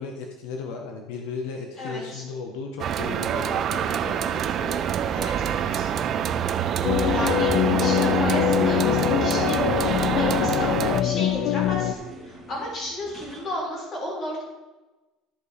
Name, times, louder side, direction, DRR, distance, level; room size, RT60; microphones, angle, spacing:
voice 1, 0.0-4.8, left 4 dB, 80° left, 2 dB, 1.2 m, -35 dB
voice 2, 1.8-2.2 5.1-5.9 7.1-10.7 11.0-14.4, left 1 dB, 30° left, -4 dB, 3.6 m, -33 dB
sound 1, 2.8-11.0, right 9 dB, 35° right, 0.4 m, -26 dB
sound 2, 5.0-13.6, right 1 dB, 15° right, 1.8 m, -44 dB
sound 3, 6.8-11.9, left 11 dB, 50° left, 0.6 m, -23 dB
13.5 x 5.2 x 4.2 m, 1.1 s
cardioid pair, 175°, 0 cm